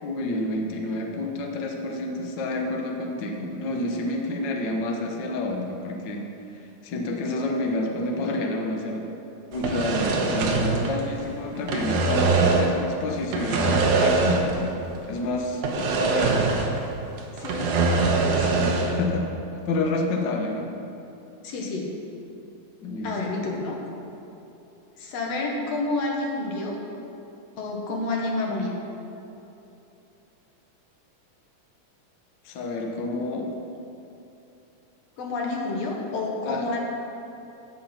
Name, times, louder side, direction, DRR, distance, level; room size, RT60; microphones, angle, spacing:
voice 1, 0.0-6.3 6.8-9.1 9.5-14.8 15.1-16.4 18.4-19.3 19.7-20.7 22.8-23.2 32.4-33.5 36.4-36.7, left 2 dB, 85° left, 1 dB, 0.9 m, -29 dB
sound 1, 9.5-11.3 11.6-12.8 13.3-14.7 14.9-15.1 15.6-16.9 17.2-19.0, right 3 dB, 75° right, 2.3 m, -23 dB
voice 2, 17.4-18.5 21.4-21.9 23.0-23.8 25.0-26.8 27.6-28.8 35.2-36.8, left 2 dB, 60° left, -1 dB, 2.2 m, -29 dB
16.0 x 5.6 x 5.8 m, 2.8 s
omnidirectional pair, 3.7 m